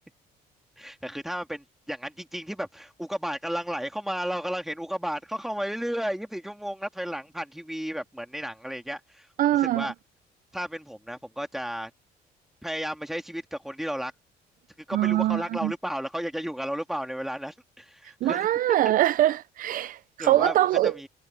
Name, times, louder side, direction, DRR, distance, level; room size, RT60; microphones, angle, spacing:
voice 1, 0.8-9.3 9.5-9.9 10.5-11.9 12.6-14.1 14.9-18.8 20.2-21.1, equal, ahead, 2.8 m, -33 dB
voice 2, 9.4-9.9 14.9-15.7 18.2-20.9, right 14 dB, 55° right, 0.4 m, -23 dB
cardioid pair, 110°, 17 cm